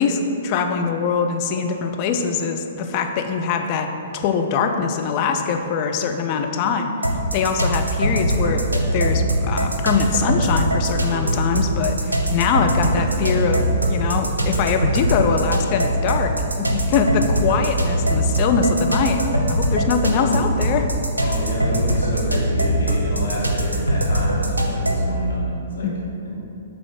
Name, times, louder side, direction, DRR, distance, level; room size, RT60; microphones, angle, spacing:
voice 1, 0.0-3.9 4.1-6.9 7.3-8.6 8.9-16.3 16.6-19.2 19.5-20.9 21.2-21.4 25.8-26.1, left 5 dB, 35° left, 5 dB, 0.5 m, -22 dB
Pop beat, 7.0-25.1, right 1 dB, 80° right, 0.7 m, -21 dB
voice 2, 21.2-25.9 26.2-26.3, left 1 dB, 65° left, -5 dB, 1.4 m, -29 dB
5.8 x 3.6 x 4.9 m, 2.7 s
figure-of-eight pair, 115°, 0 cm